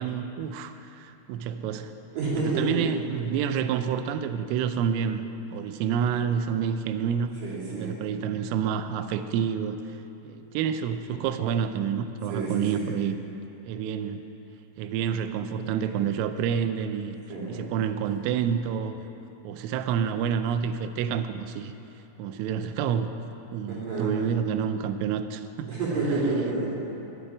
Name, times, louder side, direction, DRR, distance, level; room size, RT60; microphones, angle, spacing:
voice 1, 0.0-1.9 2.4-5.3 5.5-7.4 7.7-9.8 10.2-13.2 13.7-14.2 14.8-17.2 17.5-19.0 19.4-21.7 22.2-23.1 23.5-25.7, right 8 dB, 90° right, 9 dB, 3.3 m, -28 dB
voice 2, 2.1-2.8 7.4-8.0 12.3-13.0 17.3-17.6 23.7-24.2 25.7-26.8, right 3 dB, 45° right, -7 dB, 4.2 m, -29 dB
10.0 x 8.8 x 9.9 m, 2.9 s
omnidirectional pair, 5.8 m